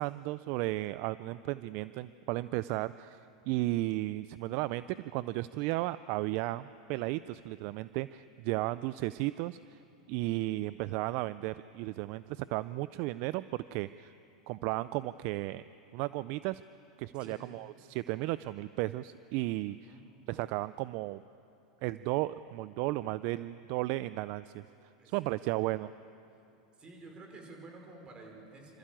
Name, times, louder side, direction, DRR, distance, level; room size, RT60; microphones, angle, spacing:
voice 1, 0.0-9.8 10.1-14.1 14.5-15.6 15.9-16.6 17.0-19.7 20.3-21.2 21.8-24.6 25.1-25.9, right 18 dB, 55° right, 16 dB, 0.4 m, -34 dB
voice 2, 17.2-17.5 19.7-20.1 25.0-25.6 26.7-28.8, right 2 dB, 25° right, 2 dB, 5.4 m, -51 dB
27.5 x 13.5 x 9.0 m, 2.7 s
hypercardioid pair, 110°, 4 cm